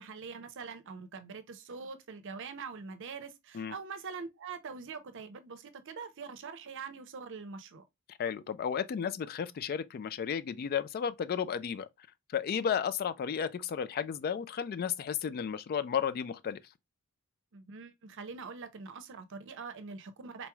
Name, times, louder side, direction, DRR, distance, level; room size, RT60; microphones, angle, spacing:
voice 1, 0.0-7.8 17.5-20.5, right 5 dB, 60° right, 0.6 m, -44 dB
voice 2, 8.1-11.9 12.3-16.6, left 7 dB, 45° left, 0.3 m, -33 dB
4.0 x 3.0 x 2.2 m
head